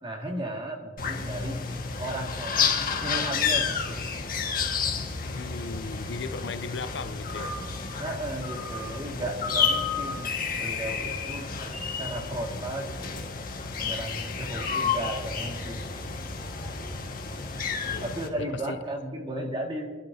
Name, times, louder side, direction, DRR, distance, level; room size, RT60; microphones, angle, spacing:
voice 1, 0.0-1.7 2.0-4.1 8.0-11.5 12.0-13.3 13.7-16.1 18.0-19.9, right 1 dB, 25° right, 0 dB, 2.0 m, -35 dB
sound 1, 1.0-18.3, left 5 dB, 45° left, 1.6 m, -31 dB
voice 2, 5.2-7.6 17.9-18.8, left 4 dB, 60° left, 11 dB, 0.5 m, -37 dB
27.5 x 11.5 x 2.8 m, 1.5 s
head